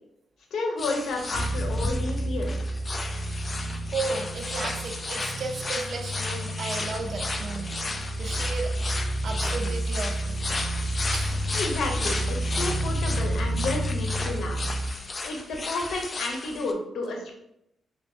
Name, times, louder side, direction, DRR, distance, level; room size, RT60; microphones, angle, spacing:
voice 1, 0.5-2.5 11.5-14.6 15.2-17.3, left 2 dB, 75° left, 2 dB, 0.8 m, -31 dB
sound 1, 0.8-16.7, left 3 dB, 30° left, 0.4 m, -34 dB
sound 2, 1.3-14.9, right 1 dB, 30° right, 1.0 m, -30 dB
voice 2, 3.9-8.7 9.2-10.4 11.1-11.4, right 4 dB, 60° right, 4 dB, 0.5 m, -34 dB
2.9 x 2.9 x 3.6 m, 0.80 s
cardioid pair, 120°, 0 cm